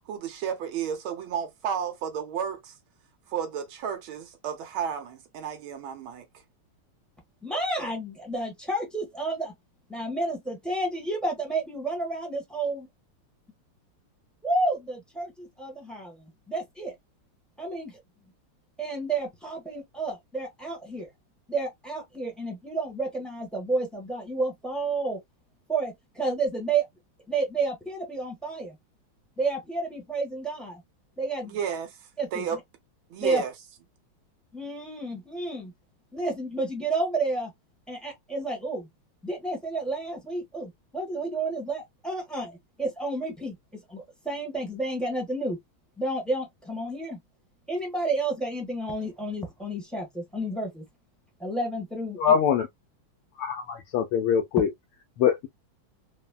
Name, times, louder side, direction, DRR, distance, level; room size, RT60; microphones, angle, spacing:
voice 1, 0.1-2.7 3.3-6.3 31.5-31.9 32.3-32.6 33.1-33.5, right 8 dB, 75° right, 1.7 m, -32 dB
voice 2, 7.4-9.5 9.9-12.9 14.4-16.9 17.6-18.0 18.8-21.1 21.5-25.2 25.7-26.9 27.3-28.8 29.4-30.8 31.2-31.5 32.2-32.6 33.2-33.4 34.5-35.7 36.1-37.5 37.9-38.9 39.2-45.6 46.0-47.2 47.7-50.8 51.4-52.4, right 2 dB, ahead, 0.8 m, -31 dB
voice 3, 52.2-52.7 53.4-54.7 55.2-55.5, left 8 dB, 85° left, 1.5 m, -23 dB
4.0 x 2.1 x 2.2 m
omnidirectional pair, 2.3 m